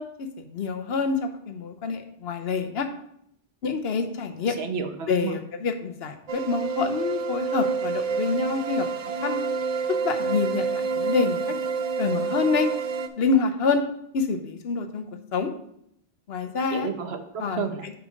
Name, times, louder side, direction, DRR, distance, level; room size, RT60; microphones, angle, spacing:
voice 1, 0.0-2.9 3.6-4.6 5.1-8.9 9.2-9.4 9.9-11.5 12.0-12.7 13.2-13.8 14.1-15.1 15.3-15.5 16.3-16.9 17.4-18.0, left 5 dB, 70° left, 7 dB, 1.0 m, -27 dB
voice 2, 4.5-5.4 16.7-17.9, right 6 dB, 70° right, 7 dB, 1.1 m, -31 dB
sound 1, 6.3-13.1, right 5 dB, 45° right, 0.5 m, -28 dB
7.6 x 4.7 x 5.0 m, 0.73 s
omnidirectional pair, 1.1 m